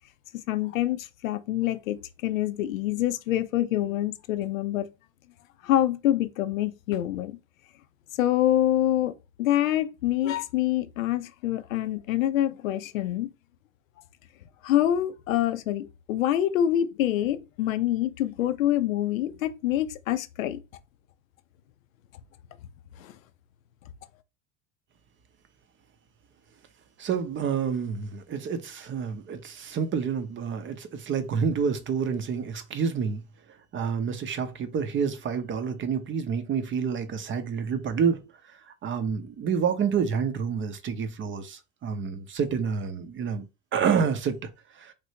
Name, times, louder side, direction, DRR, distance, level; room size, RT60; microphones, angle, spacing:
voice 1, 0.5-4.9 5.6-7.4 8.1-13.3 14.6-20.6 23.0-23.1, left 12 dB, 85° left, 0.5 m, -26 dB
voice 2, 27.0-33.2 33.7-38.2 38.5-43.4 43.7-44.5 44.7-44.9, right 6 dB, 30° right, 0.6 m, -28 dB
3.2 x 2.6 x 2.8 m
hypercardioid pair, 75°, 39 cm